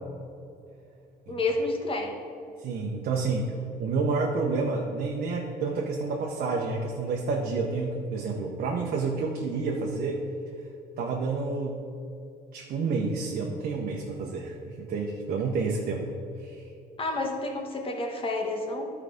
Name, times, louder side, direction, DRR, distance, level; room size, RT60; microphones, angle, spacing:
voice 1, 1.3-2.2 17.0-18.9, left 2 dB, 30° left, 2 dB, 1.4 m, -29 dB
voice 2, 2.6-3.5 3.8-10.2 11.0-11.8 12.5-16.0 16.4-16.7, right 4 dB, 60° right, -1 dB, 0.9 m, -29 dB
11.5 x 4.8 x 5.1 m, 2.6 s
cardioid pair, 110°, 17 cm